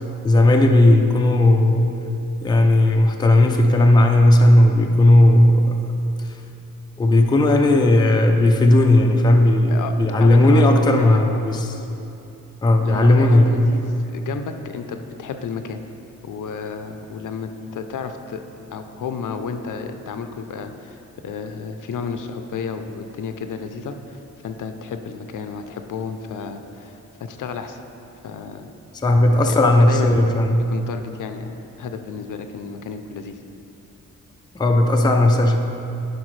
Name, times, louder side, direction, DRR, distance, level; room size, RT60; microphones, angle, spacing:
voice 1, 0.2-2.0 2.4-5.8 7.0-11.8 12.6-13.7 29.0-30.7 34.5-35.6, left 1 dB, 15° left, 3 dB, 0.4 m, -15 dB
voice 2, 9.7-11.2 12.8-15.8 16.2-18.4 18.7-27.8 28.2-28.7 29.5-30.2 30.7-33.4, left 6 dB, 70° left, 7 dB, 0.5 m, -32 dB
11.0 x 5.2 x 3.2 m, 2.9 s
wide cardioid pair, 155°, 32 cm